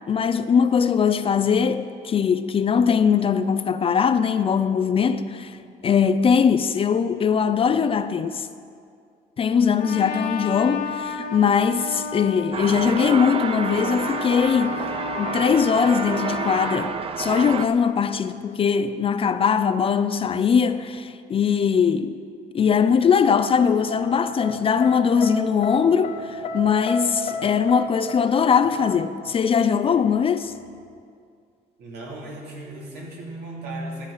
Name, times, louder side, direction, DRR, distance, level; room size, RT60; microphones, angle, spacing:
voice 1, 0.1-5.6 5.8-8.5 9.4-14.9 15.2-22.2 22.5-30.5, left 6 dB, 35° left, 0.4 m, -21 dB
Trumpet, 9.8-16.9, left 4 dB, 70° left, 1.3 m, -33 dB
sound 1, 12.5-17.7, right 6 dB, 35° right, 0.6 m, -29 dB
sound 2, 23.2-29.1, left 2 dB, 50° left, 1.2 m, -32 dB
voice 2, 31.8-34.1, right 1 dB, 75° right, 2.8 m, -36 dB
12.0 x 8.0 x 5.5 m
cardioid pair, 110°, 17 cm